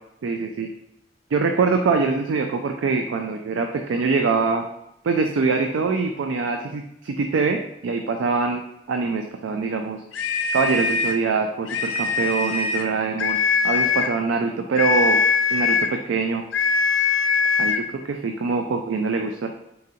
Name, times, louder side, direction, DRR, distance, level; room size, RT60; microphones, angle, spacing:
voice 1, 0.2-0.7 1.3-4.6 5.0-8.6 8.9-10.0 10.5-13.4 13.6-15.2 15.5-16.4 17.6-19.5, right 4 dB, 85° right, 4 dB, 0.4 m, -24 dB
sound 1, 10.1-11.2 11.7-12.9 13.2-14.2 14.8-16.0 16.5-17.9, left 5 dB, 90° left, 0.5 m, -22 dB
4.1 x 3.7 x 2.7 m, 0.84 s
head